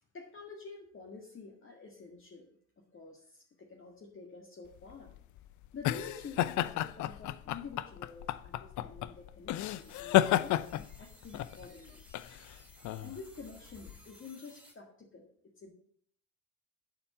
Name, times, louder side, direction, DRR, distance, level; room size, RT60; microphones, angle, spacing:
voice 1, 0.1-5.1 5.7-12.0 13.0-15.7, left 4 dB, 35° left, 0 dB, 1.8 m, -49 dB
sound 1, 4.8-14.0, left 14 dB, 50° left, 0.5 m, -32 dB
sound 2, 9.7-14.7, equal, 5° right, 2.8 m, -59 dB
8.6 x 4.6 x 7.3 m, 0.63 s
hypercardioid pair, 65°, 37 cm